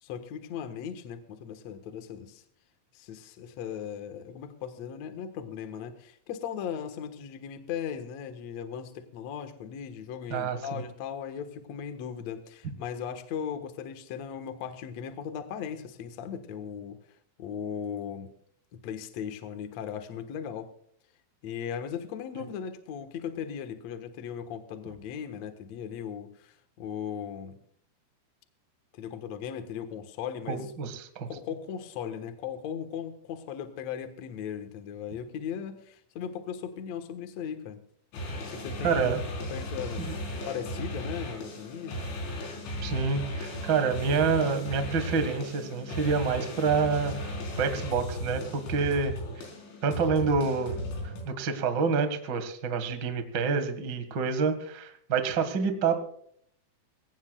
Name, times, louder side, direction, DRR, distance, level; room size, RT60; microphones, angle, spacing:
voice 1, 0.0-2.4 2.9-17.0 17.4-18.3 18.8-20.7 21.4-27.6 28.9-30.7 31.3-37.8 38.5-39.1 39.5-42.0 48.7-49.0, left 8 dB, 65° left, 8 dB, 1.7 m, -38 dB
voice 2, 10.3-10.8 30.5-31.3 38.8-39.2 40.0-40.2 42.8-49.4 49.8-50.8 51.2-56.0, right 5 dB, 75° right, 8 dB, 1.0 m, -28 dB
sound 1, 38.1-51.3, left 1 dB, 90° left, 6.7 m, -36 dB
21.5 x 18.0 x 2.4 m, 0.64 s
omnidirectional pair, 5.2 m